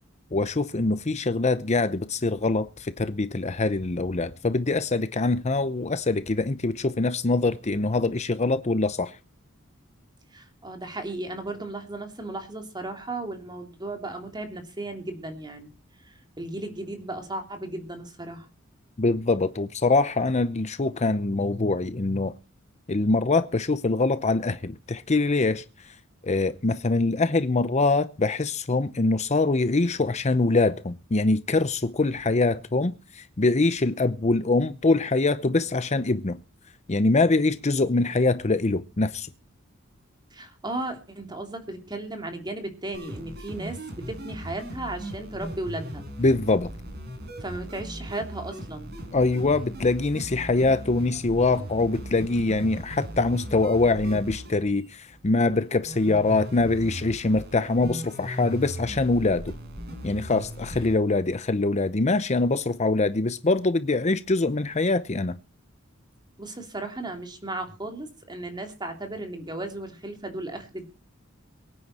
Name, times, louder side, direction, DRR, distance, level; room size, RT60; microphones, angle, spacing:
voice 1, 0.3-9.2 19.0-22.3 22.9-25.9 26.2-36.4 36.9-39.3 46.2-46.7 49.1-59.5 60.0-65.4, left 3 dB, 35° left, 0.7 m, -24 dB
voice 2, 10.3-15.7 16.0-18.5 40.3-46.0 47.4-48.9 66.4-70.9, right 2 dB, 20° right, 3.0 m, -35 dB
sound 1, 42.9-60.9, equal, 55° right, 4.9 m, -38 dB
23.5 x 9.6 x 4.3 m
head